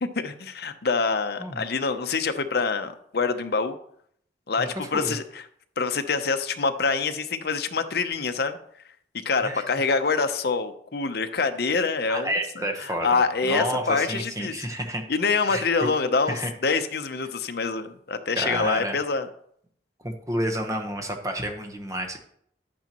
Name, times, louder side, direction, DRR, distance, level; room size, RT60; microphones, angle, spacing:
voice 1, 0.0-3.8 4.5-5.4 5.8-8.6 9.2-12.3 12.8-14.7 15.1-19.3, left 4 dB, 60° left, 8 dB, 0.7 m, -26 dB
voice 2, 4.6-5.2 9.4-9.6 12.1-15.0 15.5-15.9 16.3-16.5 18.4-19.0 20.0-22.3, right 1 dB, 20° right, 5 dB, 1.1 m, -30 dB
10.5 x 8.6 x 3.0 m, 0.67 s
head